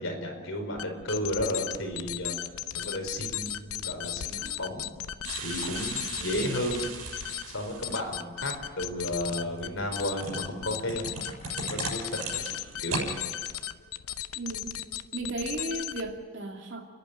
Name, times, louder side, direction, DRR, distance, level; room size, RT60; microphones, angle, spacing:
voice 1, 0.0-2.4 2.7-4.9 5.4-6.8 7.5-11.0 11.6-12.0 12.3-12.4 12.8-13.1, left 1 dB, 60° left, 2 dB, 4.9 m, -33 dB
sound 1, 0.8-16.2, left 11 dB, 85° left, 0.7 m, -36 dB
sound 2, 5.2-8.1 9.1-13.1 13.4-13.5, right 3 dB, 85° right, 6.8 m, -37 dB
voice 2, 6.2-6.5 14.4-14.8 15.1-16.8, right 2 dB, 55° right, 2 dB, 2.8 m, -35 dB
29.5 x 11.0 x 9.9 m, 1.5 s
head